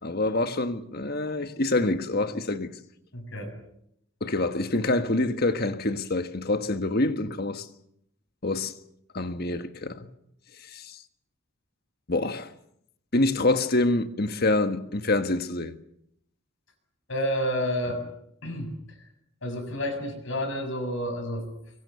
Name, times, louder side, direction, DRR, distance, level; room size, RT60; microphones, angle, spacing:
voice 1, 0.0-2.7 4.2-7.7 8.4-8.7 9.1-10.1 10.7-11.0 12.1-12.5 13.1-15.7, left 2 dB, 45° left, 1.5 m, -26 dB
voice 2, 3.1-3.5 17.1-18.0 18.4-18.7 19.4-21.4, equal, 65° left, 7.0 m, -29 dB
24.5 x 23.5 x 6.9 m
head